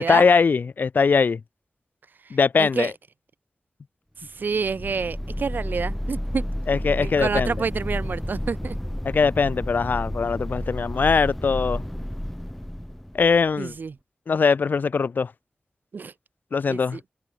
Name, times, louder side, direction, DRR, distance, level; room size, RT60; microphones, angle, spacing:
voice 1, 0.0-1.4 2.3-2.9 6.7-7.5 9.0-11.8 13.1-13.7 14.3-15.3 16.5-17.0, left 5 dB, 85° left, 0.8 m, -21 dB
voice 2, 2.2-2.9 4.2-6.5 7.0-8.8 13.6-13.9 15.9-16.1 16.7-17.0, right 5 dB, 90° right, 1.4 m, -28 dB
sound 1, 4.4-13.7, equal, 5° left, 2.2 m, -31 dB
wide cardioid pair, 100°, 3 cm